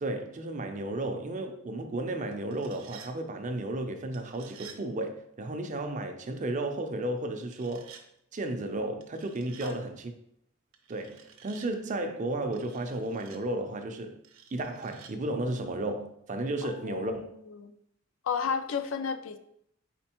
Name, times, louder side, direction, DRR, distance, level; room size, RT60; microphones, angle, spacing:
voice 1, 0.0-7.9 8.3-10.1 10.9-14.2 14.5-17.3, right 2 dB, 40° right, 0.5 m, -33 dB
sound 1, 2.3-3.1 4.1-4.8 7.4-8.0 9.0-9.8 10.7-11.7 12.5-13.4 14.2-15.1, right 7 dB, 90° right, 0.6 m, -51 dB
voice 2, 16.6-17.7 18.2-19.4, left 6 dB, 65° left, 0.4 m, -33 dB
4.3 x 4.0 x 2.9 m
head